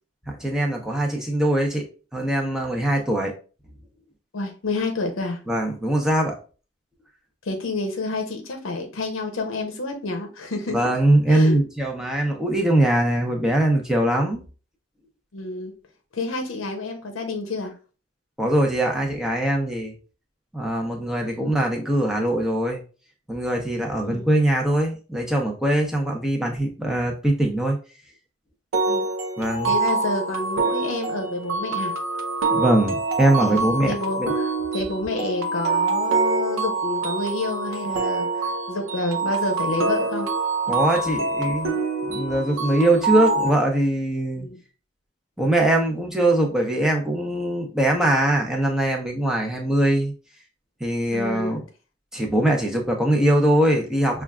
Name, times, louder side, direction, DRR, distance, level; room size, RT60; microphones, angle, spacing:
voice 1, 0.4-1.8 2.1-3.3 5.5-6.3 10.7-14.4 18.4-19.9 20.5-22.8 23.3-27.8 29.4-29.7 32.5-33.9 34.2-34.3 40.7-41.8 42.1-44.5 45.4-50.1 50.8-51.6 52.1-54.2, right 1 dB, 5° right, 0 dB, 0.7 m, -22 dB
voice 2, 4.3-5.4 7.4-10.8 11.3-11.5 15.3-15.7 16.1-17.7 24.0-24.3 28.9-29.1 29.7-31.9 33.4-40.3 41.1-41.2 44.4-44.6 51.1-51.5, left 2 dB, 80° left, 3 dB, 0.7 m, -29 dB
sound 1, 28.7-43.5, right 3 dB, 85° right, 0.7 m, -25 dB
5.8 x 2.4 x 2.2 m, 0.35 s
head